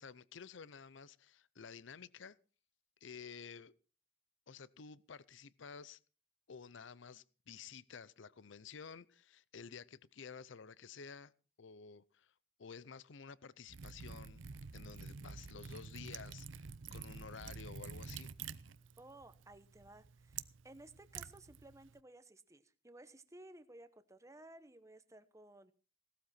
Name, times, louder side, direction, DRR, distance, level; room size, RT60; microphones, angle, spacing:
voice 1, 0.0-2.4 3.0-3.7 4.5-6.0 6.5-11.3 11.6-12.3 12.6-18.3, left 6 dB, 70° left, 0.6 m, -52 dB
Liquid, 13.7-22.0, right 5 dB, 70° right, 0.7 m, -49 dB
voice 2, 19.0-25.7, right 1 dB, 15° right, 0.9 m, -57 dB
17.5 x 12.5 x 4.3 m
head